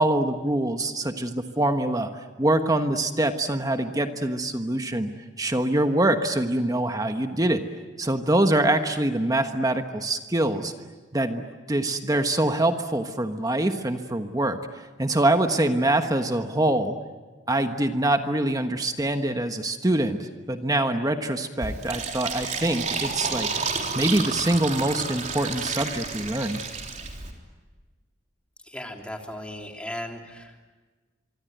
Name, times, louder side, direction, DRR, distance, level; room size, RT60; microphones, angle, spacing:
voice 1, 0.0-2.1 2.4-5.1 5.4-7.6 8.0-10.7 11.1-14.6 15.0-17.0 17.5-23.5 23.9-26.6, right 1 dB, 20° right, 7 dB, 1.3 m, -24 dB
Fill (with liquid), 21.6-27.3, right 5 dB, 40° right, 3.8 m, -31 dB
voice 2, 28.7-30.5, left 1 dB, 5° left, 2 dB, 3.2 m, -36 dB
25.0 x 25.0 x 9.3 m, 1.3 s
head